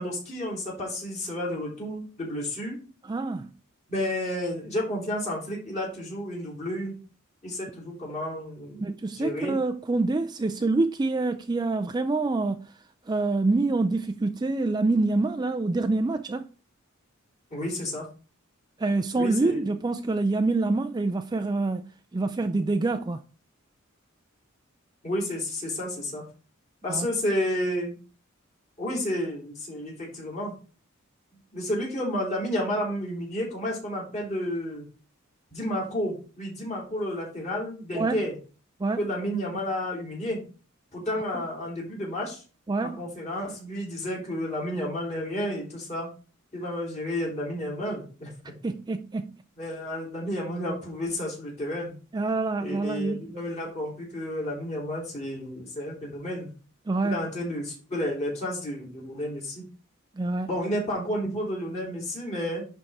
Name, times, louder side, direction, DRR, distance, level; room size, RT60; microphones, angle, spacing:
voice 1, 0.0-2.8 3.9-6.9 7.4-8.8 9.1-9.5 17.5-18.1 19.2-19.6 25.0-26.2 26.8-28.0 28.8-30.5 31.5-34.8 35.5-38.3 39.0-40.4 40.9-42.4 42.8-46.1 46.5-48.3 49.6-52.0 52.6-56.5 57.0-59.6 60.5-62.6, left 1 dB, 35° left, 3.3 m, -31 dB
voice 2, 3.1-3.5 8.8-12.6 13.1-16.5 18.8-21.8 22.1-23.2 26.9-27.1 37.9-38.2 38.8-39.0 41.3-41.4 42.7-43.0 48.6-49.3 52.1-53.2 56.9-57.2 60.2-60.5, right 3 dB, 20° right, 0.3 m, -26 dB
10.5 x 3.6 x 4.2 m
head